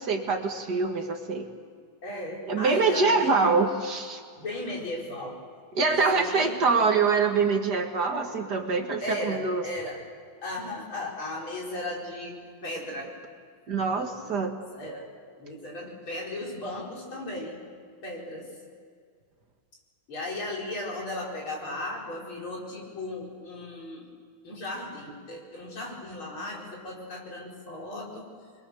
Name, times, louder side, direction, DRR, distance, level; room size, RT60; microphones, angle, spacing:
voice 1, 0.0-1.5 2.5-4.2 5.7-9.6 13.7-14.5, right 4 dB, 55° right, 4 dB, 2.3 m, -25 dB
voice 2, 2.0-3.5 4.4-5.4 5.9-6.6 9.0-10.0 10.4-13.1 14.2-14.4 14.7-15.1 15.4-17.6 18.0-18.5 20.1-24.1 24.4-28.3, left 1 dB, 80° left, -3 dB, 5.6 m, -36 dB
26.5 x 22.0 x 7.0 m, 2.1 s
omnidirectional pair, 2.3 m